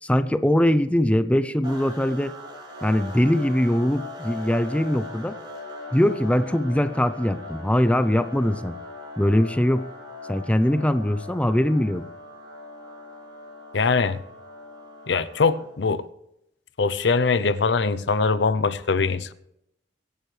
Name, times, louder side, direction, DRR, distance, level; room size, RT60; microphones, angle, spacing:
voice 1, 0.0-2.3 2.8-5.4 5.9-8.8 9.2-9.8 10.3-12.1, equal, 5° left, 0.5 m, -22 dB
sound 1, 1.6-15.8, left 2 dB, 25° right, 5.9 m, -40 dB
voice 2, 13.7-14.2 15.1-16.0 16.8-19.3, left 4 dB, 75° left, 0.6 m, -22 dB
24.0 x 11.5 x 3.3 m
head